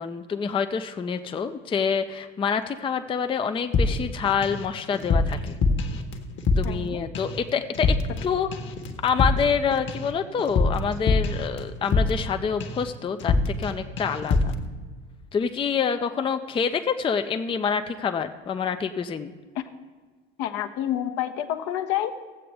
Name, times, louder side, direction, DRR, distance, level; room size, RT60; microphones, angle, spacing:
voice 1, 0.0-5.6 6.6-8.0 8.2-8.5 9.0-14.5 15.3-19.3, left 6 dB, 15° left, 8 dB, 0.5 m, -27 dB
sound 1, 3.7-4.6 4.9-6.9 7.1-7.4 7.7-8.3 8.5-12.3 12.6-12.9 13.2-13.7 14.0-14.6, left 3 dB, 40° left, 1.3 m, -24 dB
voice 2, 6.6-7.0 19.5-19.6 20.4-22.1, left 12 dB, 55° left, 8 dB, 0.9 m, -28 dB
16.0 x 7.6 x 3.4 m, 1.5 s
hypercardioid pair, 75°, 30 cm